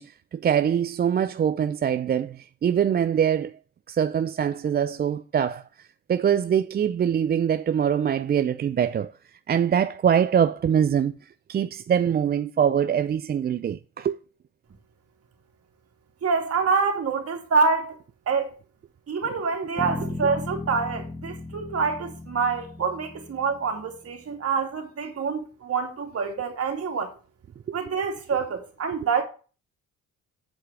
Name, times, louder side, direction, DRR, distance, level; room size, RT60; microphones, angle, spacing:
voice 1, 0.0-3.6 3.9-5.6 6.1-9.1 9.5-11.1 11.5-14.2 20.0-20.1 27.7-27.8, right 8 dB, 35° right, 0.4 m, -23 dB
voice 2, 16.2-18.0 18.3-18.6 19.1-27.1 27.7-29.2, right 5 dB, 50° right, 2.5 m, -26 dB
sound 1, 19.8-24.1, left 2 dB, 5° left, 0.9 m, -36 dB
8.3 x 4.8 x 6.1 m
cardioid pair, 90°, 30 cm